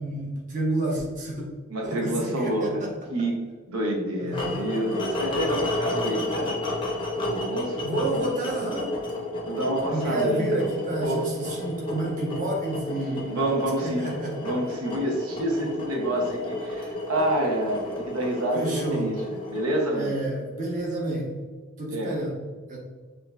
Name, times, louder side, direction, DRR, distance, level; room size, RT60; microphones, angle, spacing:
voice 1, 0.0-1.4 1.8-2.9 4.2-4.7 7.8-9.0 9.9-13.4 13.8-14.5 18.5-19.1 19.9-21.3 21.8-22.4 22.7-22.8, right 1 dB, 40° right, -3 dB, 0.9 m, -30 dB
voice 2, 1.7-3.4 3.7-6.6 7.3-7.8 9.4-10.7 11.0-11.2 13.0-14.1 14.4-20.1 21.9-22.2, right 1 dB, 90° right, 0 dB, 0.7 m, -28 dB
sound 1, 4.3-20.4, left 1 dB, 25° left, 0.6 m, -32 dB
6.0 x 2.6 x 2.3 m, 1.5 s
head